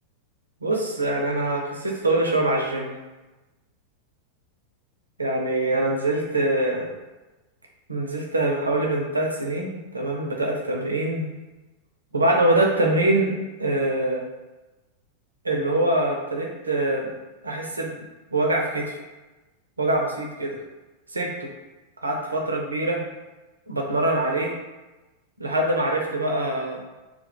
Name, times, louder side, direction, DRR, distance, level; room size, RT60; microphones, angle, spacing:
voice 1, 0.6-2.9 5.2-6.9 7.9-11.3 12.1-13.3 13.6-14.2 15.4-17.1 17.4-18.0 18.3-19.0 19.8-20.6 21.1-21.5 22.0-23.0 23.7-24.5 25.4-26.8, right 1 dB, 80° right, 0 dB, 0.4 m, -24 dB
2.2 x 2.2 x 2.8 m, 1.1 s
figure-of-eight pair, 90°, 0 cm